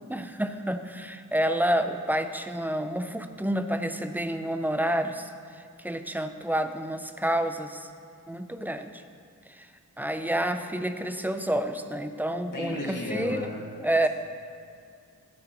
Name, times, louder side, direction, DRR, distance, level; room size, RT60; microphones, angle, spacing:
voice 1, 0.1-5.3 5.8-7.9 8.3-9.0 9.5-9.7 10.0-13.5 13.8-14.1, right 1 dB, 5° right, 8 dB, 0.4 m, -29 dB
voice 2, 12.5-13.6, left 2 dB, 80° left, -3 dB, 2.0 m, -33 dB
11.5 x 9.6 x 3.0 m, 2.4 s
wide cardioid pair, 130°, 31 cm